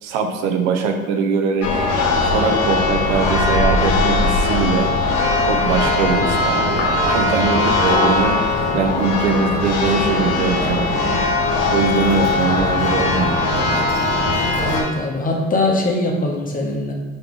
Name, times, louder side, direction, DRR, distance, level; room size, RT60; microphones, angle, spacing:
voice 1, 0.0-1.7 2.2-4.9 5.5-8.4 8.7-11.3 11.7-13.8, right 5 dB, 70° right, 5 dB, 0.6 m, -21 dB
Church bell, 1.6-14.8, left 2 dB, 60° left, 1.0 m, -19 dB
voice 2, 14.6-16.9, left 2 dB, 25° left, 0 dB, 0.9 m, -21 dB
5.0 x 3.1 x 3.1 m, 1.2 s
hypercardioid pair, 60°, 36 cm